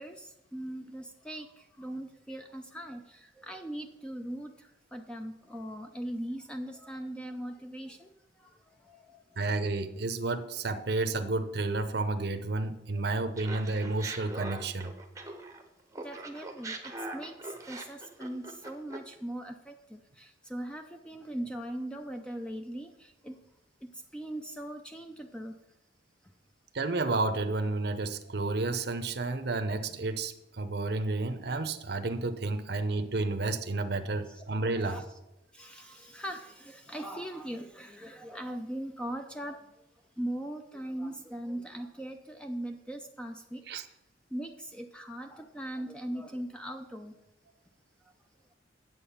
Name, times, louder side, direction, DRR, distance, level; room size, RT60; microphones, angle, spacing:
voice 1, 0.0-1.5 1.8-4.5 4.9-8.1 8.9-9.2 12.9-13.0 16.0-17.3 17.7-23.4 24.1-25.5 34.2-34.4 34.8-35.0 35.5-39.6 40.2-43.6 44.3-47.1, right 1 dB, 5° left, 5 dB, 0.5 m, -40 dB
voice 2, 9.4-14.9 26.7-35.0 43.7-43.9, right 3 dB, 55° right, 8 dB, 0.7 m, -31 dB
Laughter, 13.4-15.6 15.9-19.1, right 2 dB, 15° right, 0.8 m, -41 dB
8.3 x 7.5 x 5.7 m, 0.91 s
head